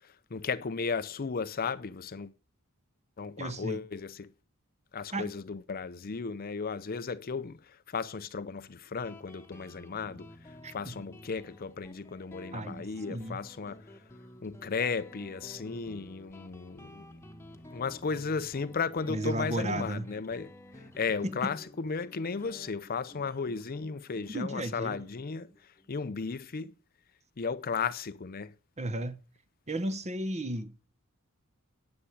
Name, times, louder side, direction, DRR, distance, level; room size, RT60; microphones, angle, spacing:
voice 1, 0.3-2.3 3.2-4.3 4.9-7.6 7.9-10.3 10.7-13.8 14.4-17.1 17.7-20.5 21.0-25.5 25.9-26.7 27.4-28.5, left 5 dB, 40° left, 0.5 m, -35 dB
voice 2, 3.4-3.8 5.1-5.3 10.6-11.0 12.5-13.4 19.1-20.1 21.2-21.4 24.3-25.1 28.8-29.2 29.7-30.9, right 1 dB, 30° right, 1.1 m, -34 dB
Guitar, 9.0-26.2, left 1 dB, 10° left, 1.2 m, -52 dB
10.0 x 8.9 x 10.0 m
head